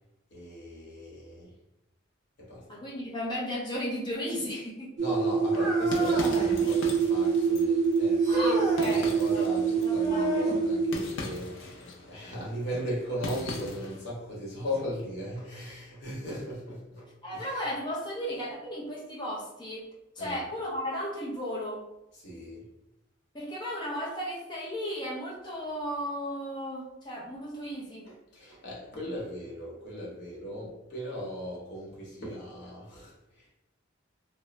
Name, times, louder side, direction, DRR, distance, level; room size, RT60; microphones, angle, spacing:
voice 1, 0.3-1.5 2.4-2.8 5.0-17.6 20.2-20.4 22.1-22.7 28.0-33.5, equal, 60° left, -5 dB, 0.9 m, -38 dB
voice 2, 2.7-4.9 6.4-6.5 8.3-9.5 9.8-10.5 17.2-19.9 20.2-21.8 23.3-28.0, equal, 25° left, -5 dB, 0.6 m, -35 dB
sound 1, 5.0-10.9, right 5 dB, 40° right, 0.5 m, -25 dB
sound 2, 5.4-14.1, left 3 dB, 85° left, 0.5 m, -41 dB
sound 3, 5.5-6.6 8.2-8.9 10.0-10.7 12.7-12.8 13.7-13.8 14.7-14.8, left 1 dB, ahead, 1.3 m, -32 dB
2.4 x 2.1 x 3.0 m, 0.93 s
head